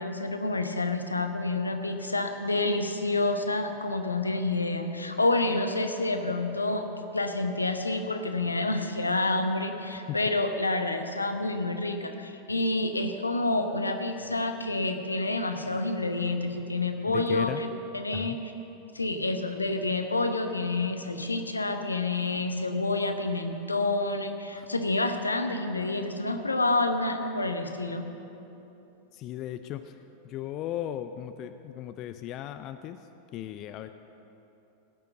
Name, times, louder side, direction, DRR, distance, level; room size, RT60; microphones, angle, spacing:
voice 1, 0.0-6.9 7.1-18.4 18.9-28.1, left 2 dB, 80° left, 6 dB, 1.0 m, -28 dB
voice 2, 17.1-17.6 18.1-18.4 24.6-24.7 29.1-30.0 30.2-33.9, left 12 dB, 35° left, 9 dB, 0.5 m, -36 dB
17.0 x 6.9 x 7.9 m, 3.0 s
figure-of-eight pair, 90°, 0 cm